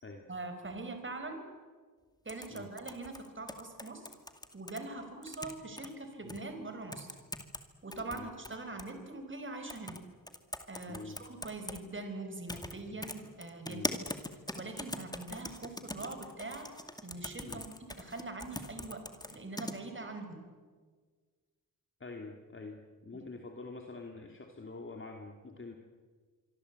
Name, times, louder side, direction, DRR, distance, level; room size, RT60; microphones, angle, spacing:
voice 1, 0.3-1.4 2.2-4.1 4.5-7.1 7.8-10.0 10.7-13.9 14.6-16.7 17.0-17.6 18.0-20.5 23.1-23.2, right 2 dB, 35° right, 6 dB, 5.0 m, -43 dB
sound 1, 2.3-4.8 5.2-5.9 6.3-6.4 6.9-7.6 7.9-8.9 9.7-10.0 10.3-11.8 12.5-12.7 13.0-19.7, left 1 dB, 10° left, 2.4 m, -41 dB
voice 2, 10.9-11.2 12.9-13.0 13.7-13.9 17.4-17.6 22.0-25.7, left 3 dB, 35° left, 2 dB, 2.8 m, -46 dB
26.0 x 24.5 x 8.3 m, 1.5 s
wide cardioid pair, 95°, 36 cm